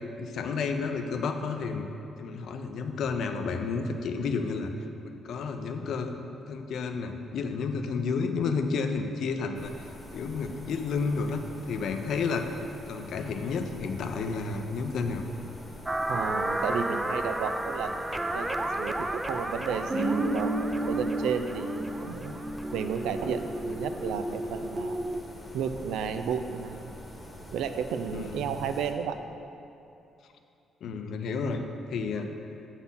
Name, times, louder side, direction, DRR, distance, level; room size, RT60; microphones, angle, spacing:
voice 1, 0.2-1.9 2.2-6.2 6.5-9.9 10.1-12.4 12.9-15.2 28.1-28.5 30.8-31.6 31.9-32.3, left 4 dB, 70° left, 6 dB, 0.5 m, -31 dB
sound 1, 9.5-28.9, left 1 dB, 15° left, 1.1 m, -45 dB
sound 2, 15.9-25.2, right 1 dB, 10° right, 0.3 m, -33 dB
voice 2, 16.1-22.3 22.7-25.0 25.5-26.9 27.5-29.2, right 7 dB, 85° right, 8 dB, 0.4 m, -33 dB
Guitar, 19.9-24.5, right 2 dB, 35° right, 1.6 m, -32 dB
7.0 x 4.1 x 5.5 m, 2.8 s
cardioid pair, 90°, 0 cm